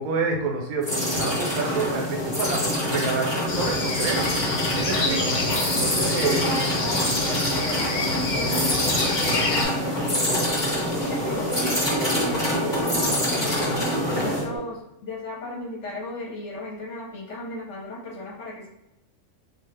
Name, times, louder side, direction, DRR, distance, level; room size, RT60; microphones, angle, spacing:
voice 1, 0.0-4.3 4.7-5.4 5.7-6.4, right 4 dB, 80° right, 1 dB, 1.1 m, -28 dB
sound 1, 0.8-14.5, left 1 dB, 20° left, 0.9 m, -26 dB
sound 2, 3.5-9.6, left 3 dB, 90° left, 0.4 m, -28 dB
voice 2, 6.2-10.4 10.9-18.7, left 1 dB, 55° left, -4 dB, 1.1 m, -35 dB
sound 3, 6.6-14.6, right 1 dB, 50° right, 0.7 m, -35 dB
2.7 x 2.4 x 3.2 m, 0.87 s
omnidirectional pair, 1.5 m